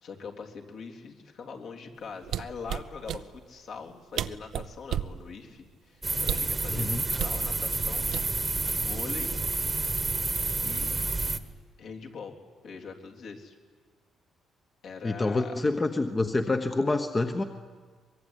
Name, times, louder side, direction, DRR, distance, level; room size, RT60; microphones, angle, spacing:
voice 1, 0.0-8.1 8.7-9.3 10.6-11.1 11.8-12.4 12.6-13.6 14.8-15.6, left 5 dB, 60° left, 1 dB, 3.5 m, -42 dB
sound 1, 2.2-3.2 3.9-4.0 4.2-5.2 6.2-6.6 7.2-7.4 8.1-8.6 8.9-9.2, right 10 dB, 70° right, 0.8 m, -32 dB
sound 2, 6.0-11.4, right 3 dB, 20° right, 1.4 m, -29 dB
voice 2, 6.7-7.0 15.0-17.4, left 2 dB, 20° left, 6 dB, 1.1 m, -27 dB
24.0 x 22.0 x 10.0 m, 1.5 s
cardioid pair, 130°, 0 cm